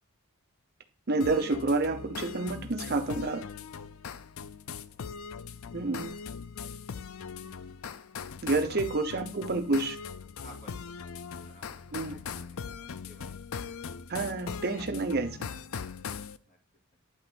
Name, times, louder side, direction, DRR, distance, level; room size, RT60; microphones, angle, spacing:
voice 1, 1.1-3.4 5.7-6.1 8.4-10.0 11.9-12.2 14.1-15.5, right 3 dB, 45° right, 0.8 m, -29 dB
sound 1, 1.2-16.4, left 6 dB, 70° left, 0.5 m, -40 dB
voice 2, 8.7-9.0 10.4-13.3 16.5-16.6, right 1 dB, 35° left, 2.5 m, -53 dB
10.5 x 3.8 x 6.2 m
head